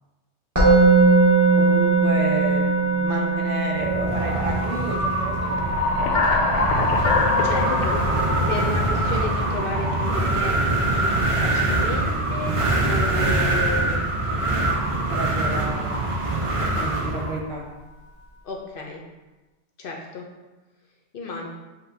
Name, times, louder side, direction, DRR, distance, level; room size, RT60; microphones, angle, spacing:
Musical instrument, 0.6-11.7, right 3 dB, 15° right, 1.2 m, -22 dB
voice 1, 1.6-5.7 6.0-6.6 15.1-17.7, right 2 dB, 75° right, -1 dB, 1.2 m, -32 dB
Wind, 3.7-17.4, right 2 dB, 40° right, 0.4 m, -24 dB
sound 1, 5.4-10.0, left 3 dB, 90° left, 0.9 m, -24 dB
voice 2, 7.4-14.1 18.4-19.0 19.8-20.2 21.1-21.5, left 4 dB, 55° left, 0 dB, 0.7 m, -33 dB
7.5 x 2.7 x 2.6 m, 1.1 s
omnidirectional pair, 1.2 m